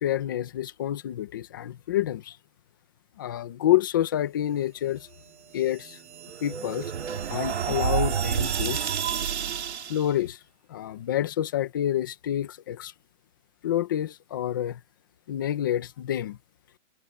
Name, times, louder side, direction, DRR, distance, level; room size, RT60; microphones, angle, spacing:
voice 1, 0.0-2.4 3.2-5.1 5.5-6.0 6.4-6.9 7.3-8.8 9.9-10.4 10.7-12.9 13.6-14.8 15.3-16.4, left 12 dB, 15° left, 0.9 m, -28 dB
sound 1, 5.6-10.1, right 8 dB, 60° right, 2.5 m, -29 dB
hypercardioid pair, 180°, 37 cm